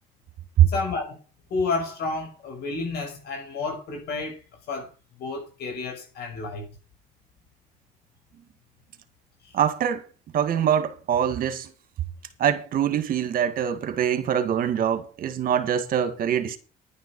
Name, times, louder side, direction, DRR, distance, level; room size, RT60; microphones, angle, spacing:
voice 1, 0.7-1.1 1.5-4.4 4.7-4.9 5.2-6.6, left 3 dB, 70° left, 6.0 m, -30 dB
voice 2, 9.5-10.0 10.3-11.7 12.4-16.6, right 9 dB, 60° right, 1.9 m, -23 dB
10.5 x 9.7 x 5.4 m
cardioid pair, 110°, 17 cm